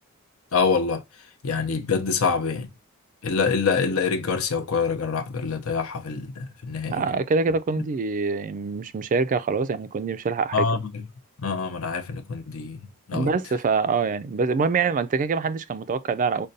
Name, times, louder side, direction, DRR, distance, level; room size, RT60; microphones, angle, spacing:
voice 1, 0.5-1.0 1.4-2.7 3.2-7.1 10.5-11.0 11.4-12.8 13.1-13.3, left 5 dB, 70° left, 0.7 m, -25 dB
voice 2, 6.9-10.8 13.1-16.5, right 4 dB, 40° right, 0.3 m, -25 dB
5.1 x 2.2 x 2.6 m
head